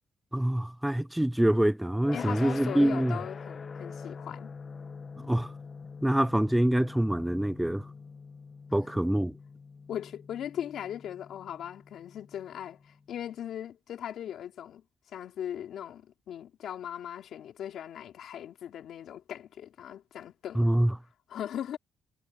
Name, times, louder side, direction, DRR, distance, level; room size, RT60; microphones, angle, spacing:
voice 1, 0.3-3.2 5.3-5.5 6.0-7.8 8.7-9.3 20.6-20.9, right 1 dB, 5° right, 0.5 m, -25 dB
sound 1, 2.0-13.0, left 5 dB, 40° left, 1.7 m, -44 dB
voice 2, 2.1-4.5 8.8-9.0 9.9-20.9 21.3-21.8, left 10 dB, 70° left, 3.2 m, -39 dB
cardioid pair, 90°, 0 cm